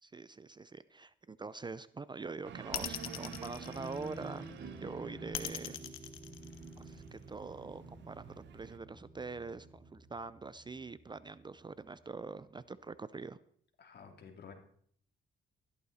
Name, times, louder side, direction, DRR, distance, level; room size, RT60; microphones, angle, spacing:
voice 1, 0.0-4.5 4.8-5.8 6.8-13.4, right 4 dB, 20° right, 16 dB, 0.5 m, -44 dB
sound 1, 2.4-5.8 6.1-8.8, right 9 dB, 65° right, 0.8 m, -52 dB
sound 2, 2.7-4.5 5.3-7.1, left 12 dB, 90° left, 1.2 m, -40 dB
sound 3, 2.8-12.9, right 2 dB, 50° right, 4.0 m, -50 dB
voice 2, 13.8-14.5, left 6 dB, 55° left, 4 dB, 3.0 m, -52 dB
14.0 x 12.5 x 4.2 m, 0.62 s
cardioid pair, 90°, 20 cm